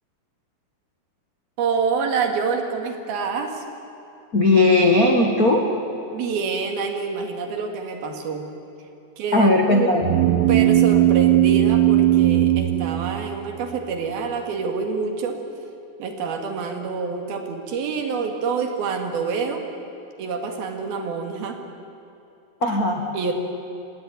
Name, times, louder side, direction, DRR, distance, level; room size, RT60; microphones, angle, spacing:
voice 1, 1.6-3.6 6.1-8.5 9.2-9.9 10.5-15.4 16.0-19.6 20.2-21.6 23.1-23.3, right 5 dB, 65° right, 4 dB, 3.8 m, -27 dB
voice 2, 4.3-5.6 9.3-10.1 22.6-23.0, left 2 dB, 65° left, 1 dB, 0.8 m, -17 dB
sound 1, 10.0-13.7, right 13 dB, 85° right, 3.0 m, -18 dB
26.0 x 17.5 x 9.9 m, 2.8 s
omnidirectional pair, 4.8 m